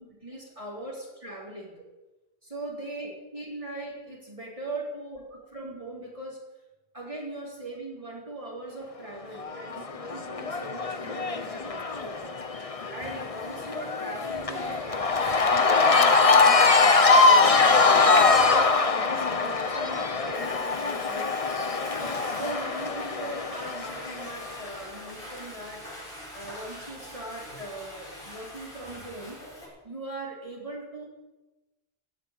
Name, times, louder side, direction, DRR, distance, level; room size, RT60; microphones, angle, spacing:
voice 1, 0.0-1.7 2.4-5.2 5.5-6.4 6.9-12.4 12.9-17.6 18.0-21.3 21.6-21.8 22.4-25.9 26.3-29.5 29.8-31.1, right 1 dB, 35° right, -4 dB, 3.6 m, -40 dB
Cheering / Crowd, 9.4-24.7, left 4 dB, 35° left, 1.0 m, -23 dB
Water / Toilet flush, 12.2-29.7, equal, 60° left, 5.1 m, -45 dB
16.0 x 8.2 x 9.0 m, 1.1 s
omnidirectional pair, 1.0 m